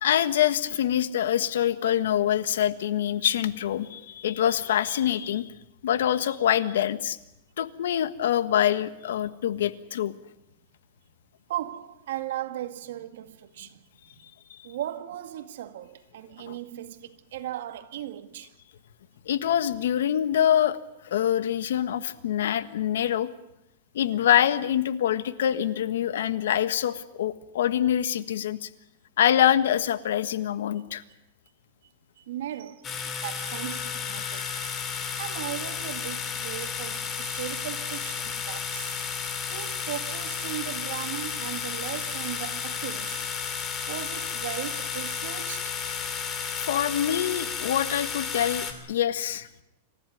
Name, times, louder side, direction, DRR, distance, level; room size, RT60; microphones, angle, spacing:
voice 1, 0.0-5.5 5.8-7.2 7.6-10.1 16.5-16.6 19.2-20.8 21.0-23.3 23.9-28.7 29.2-31.0 46.6-49.5, left 10 dB, 80° left, 1.5 m, -25 dB
voice 2, 11.5-14.3 14.6-18.5 32.2-39.0 39.2-43.5 43.8-45.8, right 12 dB, 75° right, 1.9 m, -37 dB
sound 1, 32.8-48.7, left 6 dB, 20° left, 3.1 m, -32 dB
27.0 x 15.0 x 9.3 m
supercardioid pair, 150°, 0 cm